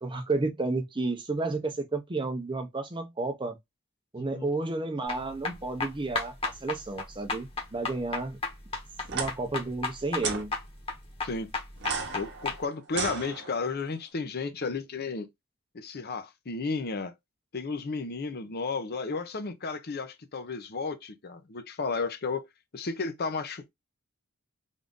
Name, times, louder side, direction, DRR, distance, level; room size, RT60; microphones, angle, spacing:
voice 1, 0.0-3.6 4.1-8.4 9.1-10.5, right 3 dB, 20° right, 0.6 m, -31 dB
sound 1, 5.1-12.6, left 3 dB, 25° left, 1.1 m, -34 dB
sound 2, 9.0-9.3 10.2-10.4 11.8-13.8, right 5 dB, 55° right, 0.9 m, -34 dB
voice 2, 12.1-15.3 15.7-17.1 17.5-22.5 22.7-23.7, left 4 dB, 45° left, 0.6 m, -33 dB
3.6 x 2.6 x 3.6 m
head